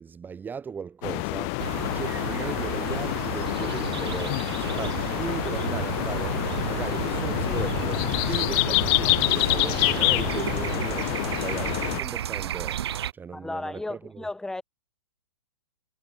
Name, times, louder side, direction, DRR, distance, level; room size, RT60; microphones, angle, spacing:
voice 1, 0.0-12.8 13.1-14.3, right 6 dB, 15° right, 1.6 m, -37 dB
sound 1, 1.0-12.0, left 40 dB or more, 35° left, 0.8 m, -27 dB
sound 2, 1.6-13.1, right 10 dB, 65° right, 1.3 m, -32 dB
voice 2, 13.3-14.6, left 2 dB, 5° left, 0.9 m, -34 dB
hypercardioid pair, 130°, 15 cm